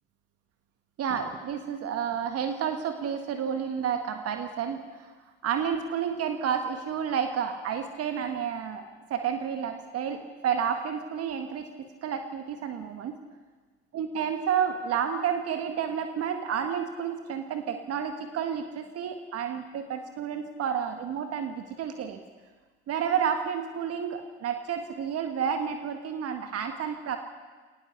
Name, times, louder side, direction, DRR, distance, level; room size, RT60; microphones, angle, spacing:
voice 1, 1.0-4.8 5.4-8.8 9.1-13.2 13.9-22.2 22.9-27.2, right 7 dB, 50° right, 6 dB, 1.8 m, -30 dB
25.5 x 19.5 x 7.1 m, 1.4 s
figure-of-eight pair, 50°, 32 cm